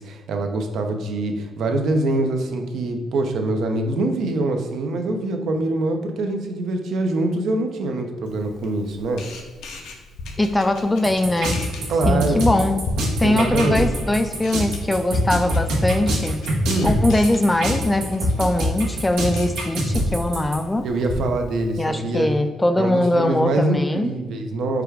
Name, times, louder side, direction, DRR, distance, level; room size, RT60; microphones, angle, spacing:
voice 1, 0.0-9.2 11.9-12.5 13.2-13.9 16.7-16.9 20.8-22.3 22.8-24.8, right 2 dB, 70° right, 4 dB, 0.6 m, -24 dB
Camera, 8.2-21.9, left 2 dB, 80° left, 0.7 m, -38 dB
voice 2, 10.4-11.6 12.1-12.8 13.2-16.4 16.8-20.9 21.8-24.1, left 1 dB, 15° left, 7 dB, 0.3 m, -21 dB
sound 1, 11.0-20.6, equal, 90° right, 1.1 m, -23 dB
4.8 x 2.3 x 4.7 m, 1.3 s
cardioid pair, 90°, 0 cm